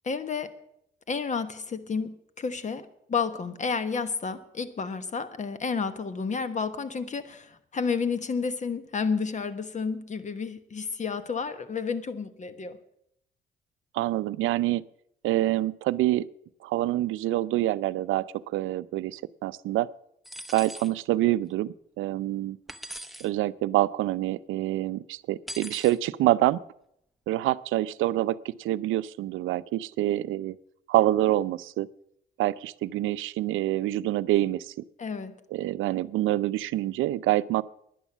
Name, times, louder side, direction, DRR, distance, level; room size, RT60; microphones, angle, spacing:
voice 1, 0.0-0.5 1.1-12.8 35.0-35.3, left 5 dB, 35° left, 12 dB, 1.2 m, -31 dB
voice 2, 13.9-14.8 15.2-16.2 16.6-19.9 20.5-22.6 23.2-26.6 27.3-30.5 30.9-31.9 32.4-34.7 35.5-37.6, right 15 dB, 85° right, 17 dB, 0.5 m, -26 dB
sound 1, 20.3-20.9 22.7-23.3 25.5-26.0, equal, ahead, 0.9 m, -40 dB
11.0 x 10.0 x 7.2 m, 0.74 s
cardioid pair, 90°, 20 cm